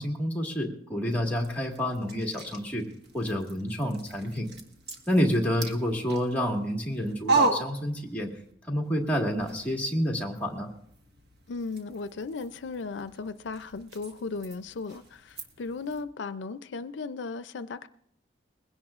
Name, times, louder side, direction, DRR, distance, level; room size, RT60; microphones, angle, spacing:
voice 1, 0.0-2.8 3.1-4.5 5.1-8.3 8.7-10.7, equal, 10° left, 1.7 m, -28 dB
sound 1, 1.3-8.5 8.8-16.0, right 3 dB, 60° right, 1.5 m, -36 dB
voice 2, 11.5-17.9, left 4 dB, 85° left, 0.5 m, -36 dB
21.0 x 16.5 x 2.5 m
head